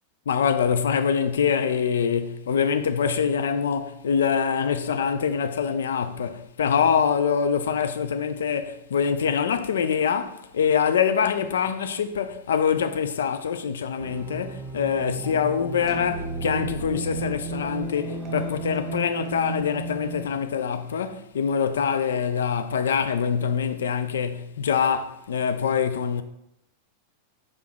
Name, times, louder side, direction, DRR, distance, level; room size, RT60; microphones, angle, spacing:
voice 1, 0.3-26.2, left 7 dB, 65° left, 0.5 m, -24 dB
sound 1, 14.0-20.3, right 2 dB, 25° right, 0.9 m, -33 dB
5.8 x 3.8 x 6.0 m
figure-of-eight pair, 90°, 0 cm